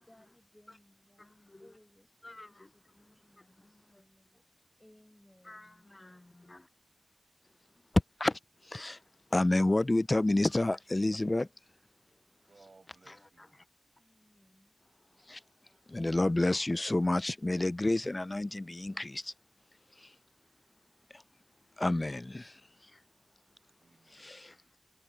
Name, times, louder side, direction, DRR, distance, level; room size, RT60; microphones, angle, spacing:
voice 1, 0.1-1.3 1.6-2.1 2.5-4.4 4.8-5.9 14.0-14.7 24.1-24.4, left 1 dB, 15° left, 7.8 m, -63 dB
voice 2, 2.2-2.7 5.4-6.6 8.2-8.4 8.6-9.0 9.3-11.5 15.3-15.4 15.9-19.3 20.0-20.1 21.1-21.2 21.8-22.6 24.1-24.5, left 2 dB, 35° left, 0.3 m, -30 dB
voice 3, 5.9-6.4 12.4-13.6 23.8-24.3, right 3 dB, 75° right, 5.5 m, -62 dB
wide cardioid pair, 80°, 0 cm